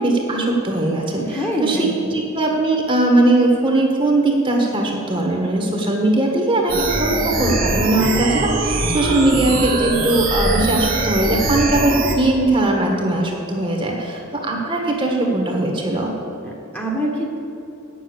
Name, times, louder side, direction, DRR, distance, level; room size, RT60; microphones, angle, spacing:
voice 1, 0.0-16.1, right 2 dB, 25° right, 1 dB, 1.4 m, -19 dB
voice 2, 1.3-2.2 16.4-17.4, equal, 10° left, -2 dB, 1.4 m, -25 dB
sound 1, 6.7-12.1, right 2 dB, 45° right, 1.4 m, -21 dB
9.2 x 7.0 x 8.0 m, 2.8 s
head